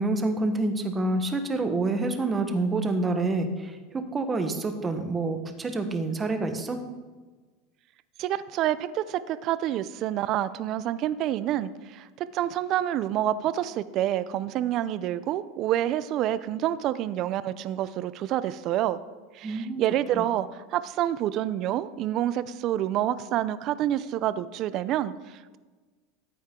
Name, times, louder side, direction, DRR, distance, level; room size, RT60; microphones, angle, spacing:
voice 1, 0.0-6.8 19.4-19.8 20.1-20.3, right 2 dB, 20° right, 7 dB, 1.2 m, -27 dB
voice 2, 8.2-19.0 19.3-25.6, right 12 dB, 45° right, 15 dB, 0.5 m, -28 dB
14.0 x 8.6 x 3.7 m, 1.3 s
supercardioid pair, 135°, 0 cm